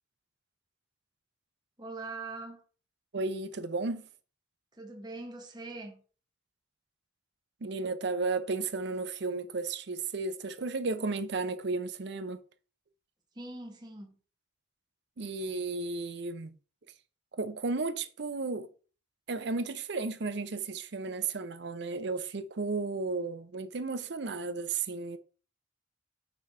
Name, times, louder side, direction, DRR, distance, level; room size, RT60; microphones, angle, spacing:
voice 1, 1.8-2.6 4.8-6.0 13.3-14.1, right 3 dB, 20° right, 1.2 m, -42 dB
voice 2, 3.1-4.1 7.6-12.4 15.2-16.6 17.3-18.7 19.3-25.2, right 3 dB, 60° right, 0.6 m, -34 dB
6.2 x 3.3 x 5.4 m
head